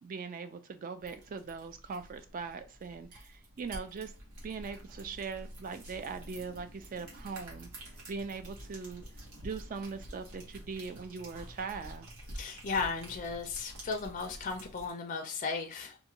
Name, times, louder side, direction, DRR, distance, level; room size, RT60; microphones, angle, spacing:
voice 1, 0.0-4.1 4.4-9.0 9.4-12.1, right 5 dB, 40° right, 0.3 m, -41 dB
sound 1, 1.0-14.9, right 1 dB, 75° right, 1.1 m, -49 dB
voice 2, 12.4-16.0, left 4 dB, 35° left, 0.4 m, -35 dB
2.5 x 2.4 x 2.9 m
head